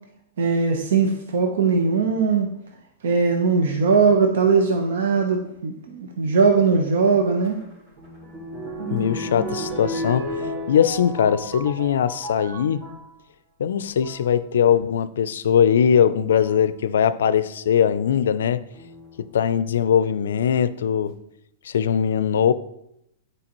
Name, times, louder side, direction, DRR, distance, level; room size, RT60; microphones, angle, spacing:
voice 1, 0.4-2.5 3.0-7.6, right 4 dB, 75° right, 0.8 m, -20 dB
sound 1, 7.4-13.1 13.8-14.3 15.5-15.6 16.3-16.6 18.7-19.4 20.0-20.1 20.3-20.4, equal, 35° right, 2.3 m, -33 dB
voice 2, 8.9-10.3 10.7-12.8 13.6-18.6 19.2-21.2 21.6-22.5, left 8 dB, 85° left, 0.4 m, -20 dB
8.6 x 4.8 x 3.0 m
hypercardioid pair, 135°, 0 cm